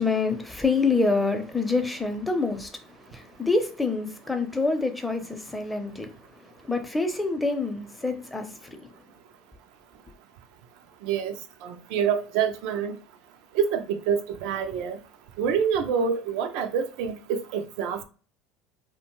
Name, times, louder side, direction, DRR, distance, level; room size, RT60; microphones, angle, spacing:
voice 1, 0.0-2.7 3.1-6.1 6.7-8.5 8.8-8.9, left 3 dB, 10° left, 0.6 m, -26 dB
voice 2, 11.0-11.3 11.6-13.0 13.5-15.0 15.4-18.0, right 7 dB, 70° right, 0.3 m, -26 dB
2.5 x 2.2 x 3.0 m
hypercardioid pair, 75°, 0 cm